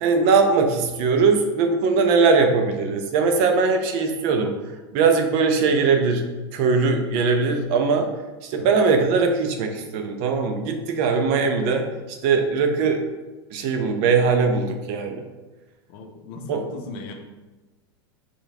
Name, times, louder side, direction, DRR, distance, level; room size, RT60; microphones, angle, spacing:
voice 1, 0.0-4.5 4.9-6.2 6.5-8.1 8.4-13.0 13.5-15.2 16.5-16.6, right 4 dB, 55° right, 5 dB, 0.7 m, -20 dB
voice 2, 8.6-8.9 15.9-17.1, left 3 dB, 55° left, 4 dB, 0.8 m, -38 dB
4.6 x 3.1 x 3.3 m, 1.2 s
supercardioid pair, 120°, 14 cm